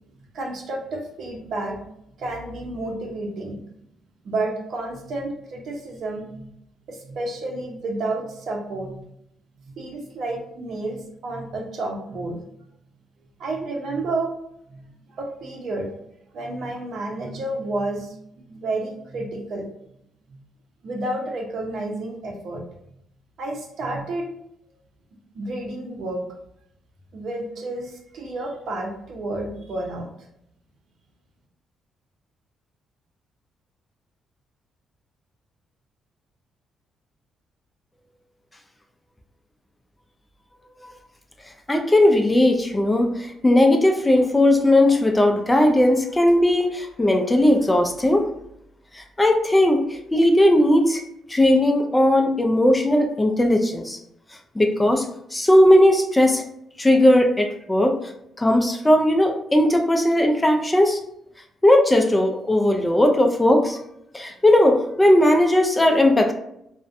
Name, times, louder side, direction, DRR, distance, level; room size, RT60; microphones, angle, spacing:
voice 1, 0.3-1.8 2.2-3.6 4.2-6.5 6.9-9.1 9.6-12.4 13.4-14.3 14.7-15.9 16.3-19.7 20.3-20.4 20.8-22.6 23.4-24.2 25.3-26.2 27.1-30.1, right 2 dB, 65° right, 0 dB, 0.6 m, -30 dB
voice 2, 41.7-48.3 48.9-51.0 51.3-54.0 54.6-56.4 56.8-58.0 58.4-61.0 61.6-63.8 64.1-66.3, left 1 dB, 15° left, 4 dB, 0.3 m, -18 dB
2.5 x 2.1 x 2.5 m, 0.76 s
cardioid pair, 90°, 0 cm